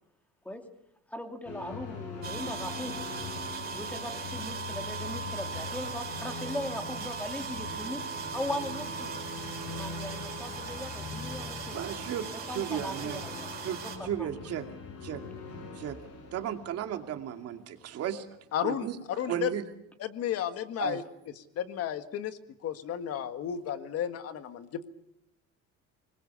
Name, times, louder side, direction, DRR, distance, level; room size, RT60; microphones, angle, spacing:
voice 1, 1.1-3.0 3.7-8.0 8.3-9.2 9.7-11.8 12.3-13.5 13.8-13.9 14.2-14.3, left 1 dB, 5° left, 5 dB, 2.6 m, -39 dB
sound 1, 1.4-18.3, left 4 dB, 70° left, 7.8 m, -43 dB
sound 2, 2.2-14.0, right 5 dB, 30° right, 4.9 m, -39 dB
voice 2, 11.7-13.2 13.6-14.6 15.0-15.2 15.8-16.0 16.3-18.3 18.6-19.0 19.3-19.6 20.8-21.0, right 10 dB, 50° right, 6 dB, 2.5 m, -34 dB
voice 3, 18.5-18.9 19.2-19.5 20.0-21.0 21.6-24.9, left 9 dB, 50° left, 10 dB, 1.7 m, -33 dB
24.5 x 21.0 x 7.0 m, 0.81 s
cardioid pair, 160°, 30 cm